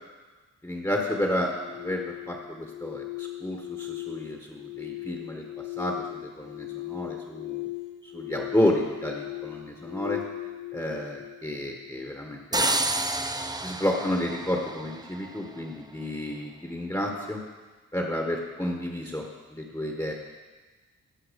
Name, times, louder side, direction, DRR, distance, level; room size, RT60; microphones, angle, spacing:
voice 1, 0.6-7.7 8.0-10.2 10.7-13.0 13.6-17.4 17.9-20.1, left 1 dB, 10° left, 0 dB, 1.5 m, -31 dB
sound 1, 1.4-12.4, left 17 dB, 70° left, 0.8 m, -38 dB
sound 2, 12.5-15.4, right 2 dB, 10° right, 0.6 m, -29 dB
15.0 x 5.5 x 5.3 m, 1.3 s
cardioid pair, 55°, 32 cm